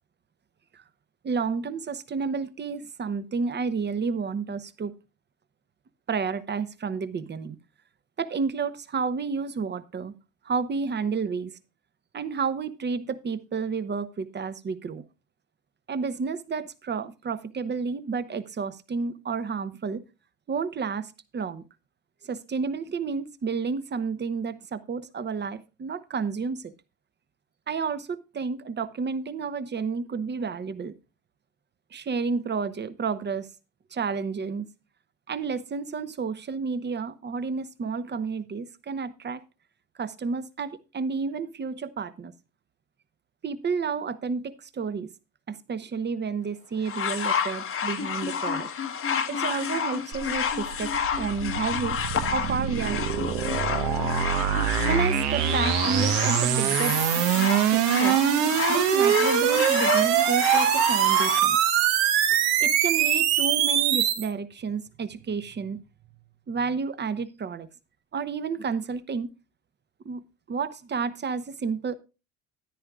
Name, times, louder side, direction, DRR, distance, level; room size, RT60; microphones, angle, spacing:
voice 1, 1.2-4.9 6.1-7.6 8.2-10.1 10.4-11.6 12.1-15.0 15.9-20.0 20.5-21.6 22.2-26.7 27.7-31.0 31.9-33.5 33.9-34.7 35.3-39.4 40.0-42.3 43.4-45.1 45.5-48.7 49.3-52.0 52.3-53.4 54.8-57.0 57.7-58.2 58.7-61.6 62.6-65.8 66.5-67.7 68.1-69.3 70.0-70.2 70.5-71.9, right 5 dB, 25° right, 1.0 m, -31 dB
sound 1, 46.8-61.4 62.3-62.4, left 7 dB, 35° left, 1.1 m, -30 dB
sound 2, 50.1-64.3, right 9 dB, 70° right, 1.4 m, -23 dB
13.5 x 10.0 x 2.4 m
hypercardioid pair, 80°, 40 cm